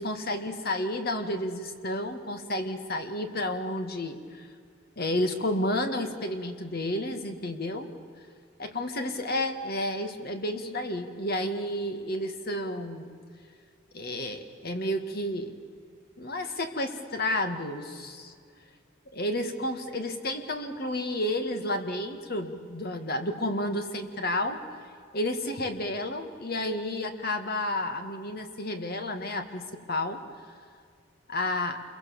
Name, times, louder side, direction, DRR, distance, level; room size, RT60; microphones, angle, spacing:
voice 1, 0.0-4.5 5.0-7.9 8.6-13.1 13.9-15.6 16.2-18.3 19.1-24.6 25.1-30.2 31.3-31.8, left 1 dB, 50° left, 7 dB, 2.1 m, -31 dB
27.5 x 23.0 x 7.2 m, 2.2 s
head